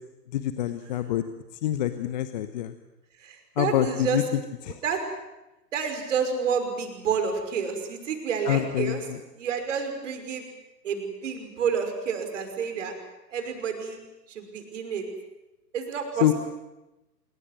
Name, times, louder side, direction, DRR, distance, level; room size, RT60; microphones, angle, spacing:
voice 1, 0.3-1.2 1.6-2.7 3.6-4.2 4.7-4.8 8.5-9.2 16.2-16.3, left 12 dB, 25° left, 11 dB, 1.0 m, -26 dB
voice 2, 3.2-4.2 4.8-5.0 5.7-9.0 9.4-10.5 10.8-12.9 13.3-14.0 14.3-15.1 15.7-16.3, right 6 dB, 45° right, 6 dB, 5.7 m, -29 dB
26.5 x 22.5 x 7.9 m, 0.99 s
figure-of-eight pair, 125°, 49 cm